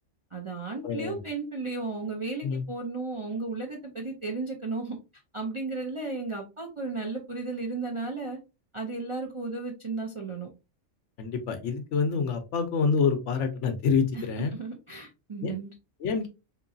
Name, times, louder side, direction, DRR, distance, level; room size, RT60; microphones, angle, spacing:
voice 1, 0.3-5.0 5.3-8.4 8.7-10.5 14.1-14.2 14.5-15.7, right 3 dB, 35° right, 0 dB, 0.5 m, -34 dB
voice 2, 0.8-1.2 2.4-2.6 11.2-14.5 15.4-15.5 16.0-16.3, left 5 dB, 70° left, 7 dB, 1.0 m, -27 dB
3.7 x 3.0 x 2.6 m, 0.27 s
omnidirectional pair, 1.3 m